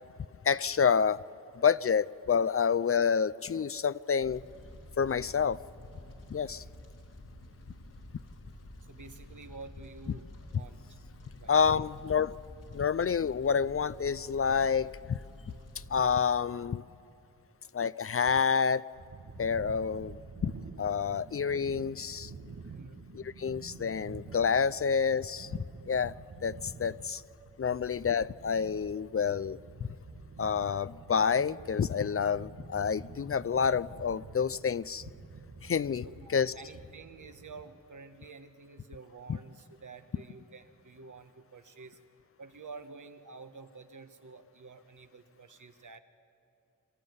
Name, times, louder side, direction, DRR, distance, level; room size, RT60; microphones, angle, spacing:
voice 1, 0.4-1.2 1.6-4.4 5.0-5.6 6.3-6.6 11.5-12.3 12.7-15.2 15.9-16.8 17.7-18.9 19.4-22.3 23.1-26.1 26.4-27.2 27.6-29.6 30.4-35.0 35.6-36.5, left 6 dB, 45° left, 18 dB, 0.4 m, -28 dB
Fire, 4.2-16.2, left 1 dB, 85° left, 2.9 m, -50 dB
voice 2, 8.9-11.0 11.4-11.9 22.7-23.0 36.0-42.0 42.4-46.0, right 4 dB, 70° right, 8 dB, 1.3 m, -50 dB
sound 1, 18.9-37.6, right 4 dB, 85° right, 1.5 m, -48 dB
26.0 x 13.0 x 9.6 m, 2.6 s
wide cardioid pair, 55°, 32 cm